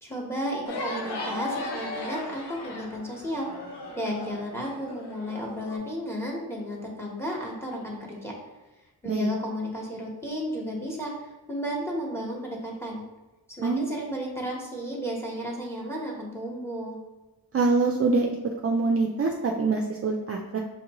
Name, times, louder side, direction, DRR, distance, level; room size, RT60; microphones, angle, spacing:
voice 1, 0.0-3.5 3.9-8.3 9.0-13.0 13.6-17.0, equal, 5° left, -2 dB, 1.1 m, -33 dB
sound 1, 0.7-5.8, left 2 dB, 85° left, 0.9 m, -36 dB
voice 2, 13.6-13.9 17.5-18.3 18.6-20.6, right 3 dB, 40° right, 1 dB, 0.4 m, -24 dB
6.1 x 2.5 x 2.9 m, 1.1 s
wide cardioid pair, 90°, 39 cm